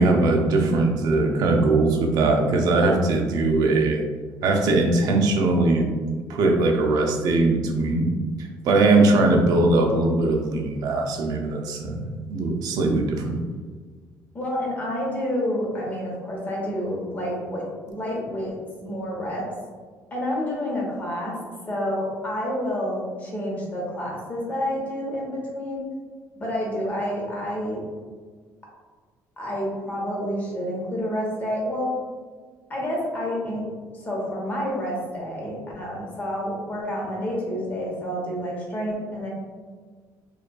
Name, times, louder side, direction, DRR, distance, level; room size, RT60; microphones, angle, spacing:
voice 1, 0.0-4.0 4.4-5.9 6.3-8.1 8.6-13.4, right 2 dB, 60° right, 2 dB, 0.5 m, -20 dB
voice 2, 14.3-18.6 18.8-19.5 20.1-21.4 21.7-25.8 26.3-27.8 29.4-31.9 32.7-33.7 33.9-39.3, equal, 25° left, -3 dB, 0.9 m, -29 dB
5.0 x 2.3 x 2.2 m, 1.5 s
cardioid pair, 175°, 7 cm